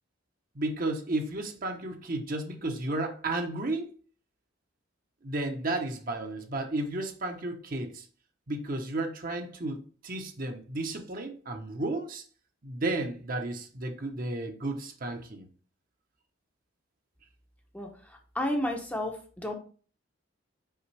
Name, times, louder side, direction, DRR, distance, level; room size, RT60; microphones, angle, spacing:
voice 1, 0.5-3.9 5.2-8.1 8.5-12.2 12.6-15.5, right 2 dB, 45° right, 0.9 m, -33 dB
voice 2, 17.7-19.6, left 1 dB, 10° left, 0.8 m, -32 dB
5.7 x 5.1 x 3.3 m
head